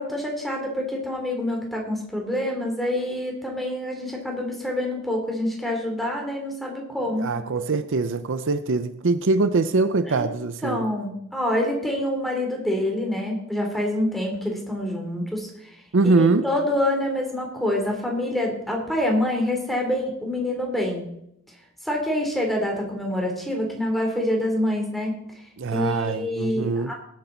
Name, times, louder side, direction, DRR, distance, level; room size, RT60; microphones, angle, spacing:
voice 1, 0.0-7.3 10.1-10.3 10.6-15.7 16.0-21.0 21.8-25.1 25.7-26.9, left 1 dB, ahead, 3.2 m, -26 dB
voice 2, 7.2-10.9 15.9-16.5 25.6-26.9, right 3 dB, 60° right, 0.6 m, -23 dB
19.5 x 8.7 x 4.0 m
head